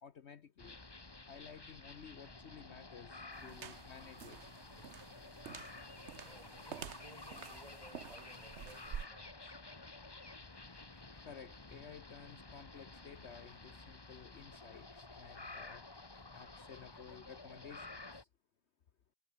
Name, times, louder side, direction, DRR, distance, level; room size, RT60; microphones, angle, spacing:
voice 1, 0.0-0.8 1.3-4.6 11.2-15.8 16.3-18.3, left 7 dB, 55° left, 1.1 m, -54 dB
sound 1, 0.6-18.2, left 3 dB, 20° left, 1.2 m, -52 dB
sound 2, 3.3-9.1, right 8 dB, 55° right, 1.2 m, -49 dB
voice 2, 6.2-9.6, right 1 dB, 25° right, 2.7 m, -59 dB
sound 3, 10.5-17.6, left 4 dB, 70° left, 3.1 m, -72 dB
omnidirectional pair, 1.5 m